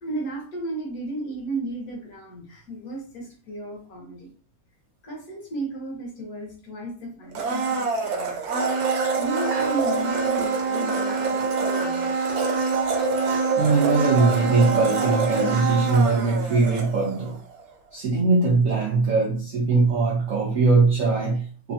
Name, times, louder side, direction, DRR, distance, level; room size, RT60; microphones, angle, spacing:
voice 1, 0.0-4.3 5.0-8.4 9.2-12.1, right 2 dB, 60° left, -1 dB, 1.2 m, -34 dB
Domestic sounds home sounds, 7.3-17.3 17.6-17.7, right 4 dB, 70° right, 0.9 m, -25 dB
voice 2, 13.6-17.4 17.9-21.7, right 3 dB, 90° right, -3 dB, 0.7 m, -21 dB
3.2 x 2.2 x 2.6 m, 0.43 s
omnidirectional pair, 2.1 m